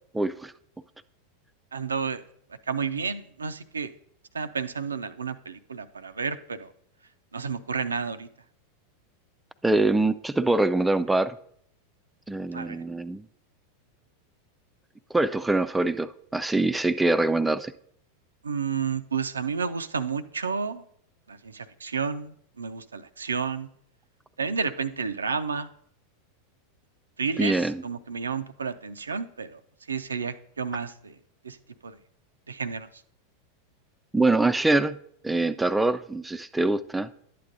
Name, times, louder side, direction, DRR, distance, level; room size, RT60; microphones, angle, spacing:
voice 1, 0.1-0.5 9.6-11.4 12.3-13.2 15.1-17.7 27.4-27.8 34.1-35.0 35.2-37.1, right 2 dB, 10° right, 13 dB, 0.3 m, -24 dB
voice 2, 1.7-2.2 2.7-3.9 4.3-6.7 7.3-8.3 12.5-12.8 18.4-20.8 21.3-23.7 24.4-25.7 27.2-29.6 29.9-31.2 31.4-31.6 31.8-32.0 32.5-32.9, right 5 dB, 85° right, 12 dB, 0.4 m, -31 dB
11.5 x 8.3 x 2.5 m, 0.68 s
figure-of-eight pair, 90°, 0 cm